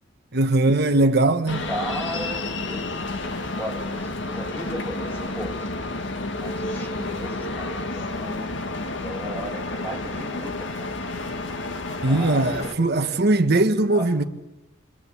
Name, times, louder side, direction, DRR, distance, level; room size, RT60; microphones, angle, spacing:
voice 1, 0.3-1.6 12.0-14.2, right 2 dB, 55° right, 1.3 m, -20 dB
sound 1, 1.5-12.7, left 2 dB, 65° left, 2.0 m, -30 dB
voice 2, 1.7-5.7 6.4-8.6 9.0-11.1 12.1-13.0 13.9-14.1, equal, 10° left, 7.0 m, -36 dB
29.5 x 23.5 x 8.5 m
head